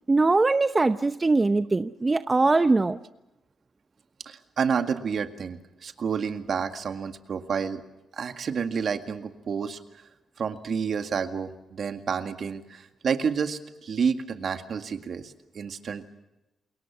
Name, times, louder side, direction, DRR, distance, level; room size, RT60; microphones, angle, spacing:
voice 1, 0.1-3.0, right 3 dB, 25° right, 11 dB, 0.8 m, -22 dB
voice 2, 4.3-7.8 8.1-9.8 10.4-16.1, right 6 dB, 60° right, 7 dB, 2.0 m, -29 dB
29.0 x 22.0 x 6.1 m, 0.97 s
cardioid pair, 70°, 0 cm